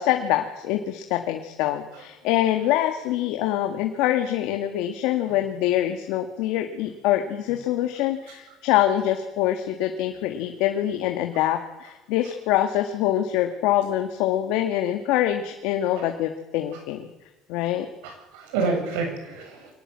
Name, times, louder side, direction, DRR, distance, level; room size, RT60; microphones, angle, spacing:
voice 1, 0.0-17.0 17.5-17.9, left 12 dB, 75° left, 5 dB, 1.9 m, -24 dB
voice 2, 18.0-19.7, right 4 dB, 85° right, 3 dB, 7.8 m, -30 dB
23.0 x 18.5 x 7.6 m, 1.0 s
cardioid pair, 115°, 0 cm